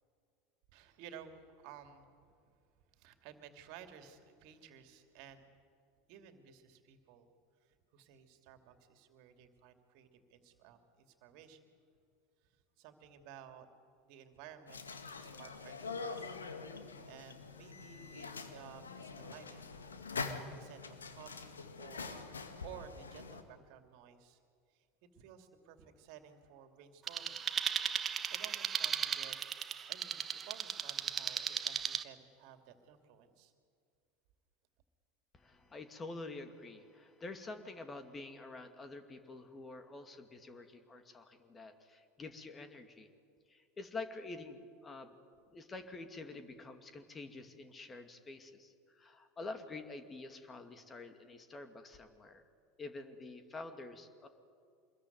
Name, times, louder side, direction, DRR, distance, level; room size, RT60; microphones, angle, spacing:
voice 1, 0.7-2.1 2.9-5.4 6.1-7.3 7.6-11.6 12.8-13.7 14.0-14.8 15.2-16.3 17.0-19.7 20.5-22.2 22.6-24.4 24.7-24.9 25.1-27.5 28.0-29.4 29.9-33.5, right 8 dB, 55° right, 7 dB, 2.7 m, -55 dB
sound 1, 14.7-23.4, left 4 dB, 80° left, 2.0 m, -45 dB
sound 2, 27.1-32.0, right 7 dB, 30° right, 1.2 m, -36 dB
voice 2, 35.3-43.1 43.5-45.1 45.5-52.4 52.8-54.3, left 3 dB, 25° left, 8 dB, 2.5 m, -48 dB
26.0 x 21.5 x 9.5 m, 2.3 s
figure-of-eight pair, 80°, 0 cm